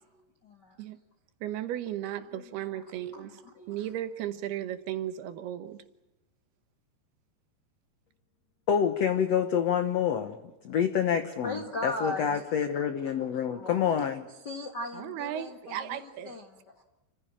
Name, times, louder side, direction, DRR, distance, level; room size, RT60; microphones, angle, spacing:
voice 1, 0.1-0.8 2.3-2.8 3.1-3.9 11.4-12.6 12.9-13.9 14.4-16.5, left 1 dB, 50° left, 1.2 m, -39 dB
voice 2, 1.4-3.4 3.7-5.8 14.9-16.4, right 11 dB, 75° right, 3.1 m, -35 dB
voice 3, 8.7-10.4 10.6-14.3, left 8 dB, 75° left, 1.5 m, -27 dB
29.5 x 15.5 x 8.9 m
omnidirectional pair, 4.7 m